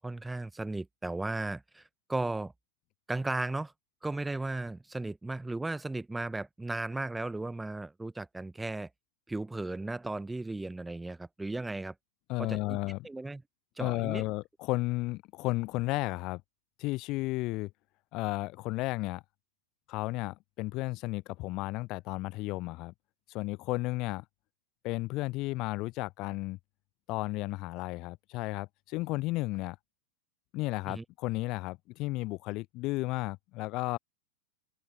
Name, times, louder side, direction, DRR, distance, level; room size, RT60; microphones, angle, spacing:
voice 1, 0.0-2.5 3.1-3.7 4.0-8.9 9.3-11.9 12.4-12.8 13.0-13.4 13.8-14.2 30.9-31.0, right 2 dB, 5° right, 0.6 m, -35 dB
voice 2, 12.3-13.0 13.8-16.4 16.8-17.7 18.1-19.2 19.9-22.9 23.3-24.2 24.8-26.6 27.1-29.8 30.5-34.0, left 21 dB, 40° left, 0.4 m, -33 dB
figure-of-eight pair, 90°, 0 cm